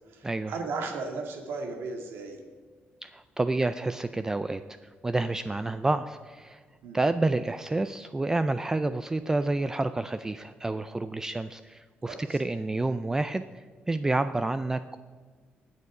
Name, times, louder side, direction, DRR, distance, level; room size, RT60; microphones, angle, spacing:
voice 1, 0.1-2.4 6.8-7.0 12.1-12.4, right 3 dB, 90° right, 3 dB, 1.9 m, -36 dB
voice 2, 3.0-6.6 6.9-15.0, right 2 dB, 15° right, 11 dB, 0.3 m, -29 dB
20.0 x 6.9 x 4.8 m, 1.5 s
cardioid pair, 120°, 4 cm